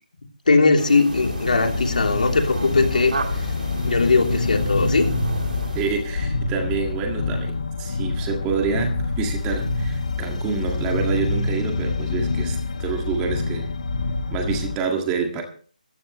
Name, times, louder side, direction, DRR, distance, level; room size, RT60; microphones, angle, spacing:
voice 1, 0.5-3.1 3.8-5.2, left 3 dB, 70° left, 4 dB, 3.2 m, -19 dB
sound 1, 0.8-6.2, right 3 dB, 70° right, 2.0 m, -33 dB
sound 2, 1.1-14.8, left 3 dB, 50° left, 1.8 m, -26 dB
voice 2, 5.7-13.7 14.3-15.4, right 6 dB, 10° right, 3 dB, 1.9 m, -27 dB
17.0 x 14.5 x 3.1 m, 0.42 s
hypercardioid pair, 170°, 5 cm